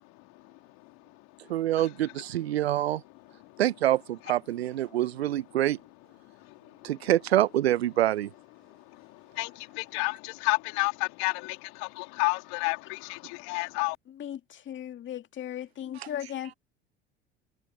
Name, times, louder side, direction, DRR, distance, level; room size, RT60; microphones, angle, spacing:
voice 1, 1.5-3.0 3.6-5.8 6.8-8.3 16.0-16.1, right 13 dB, 80° right, 0.7 m, -26 dB
voice 2, 9.8-11.6 12.0-13.2 13.5-13.9, left 30 dB, 60° left, 3.2 m, -29 dB
voice 3, 14.1-16.6, left 11 dB, 40° left, 2.2 m, -37 dB
hypercardioid pair, 70°, 31 cm